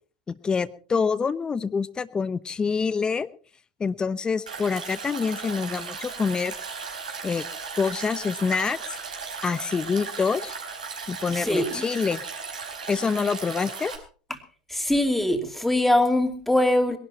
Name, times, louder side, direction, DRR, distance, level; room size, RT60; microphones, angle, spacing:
voice 1, 0.3-3.3 3.8-6.5 7.2-7.4 7.7-8.8 9.4-10.5 11.1-12.2 12.9-13.9, left 5 dB, 20° left, 16 dB, 0.9 m, -26 dB
Stream, 4.5-14.0, right 5 dB, 85° right, 4.5 m, -36 dB
voice 2, 11.3-11.8 14.7-17.0, left 1 dB, 5° left, 6 dB, 2.7 m, -22 dB
21.5 x 12.0 x 4.3 m, 0.40 s
hypercardioid pair, 85°, 4 cm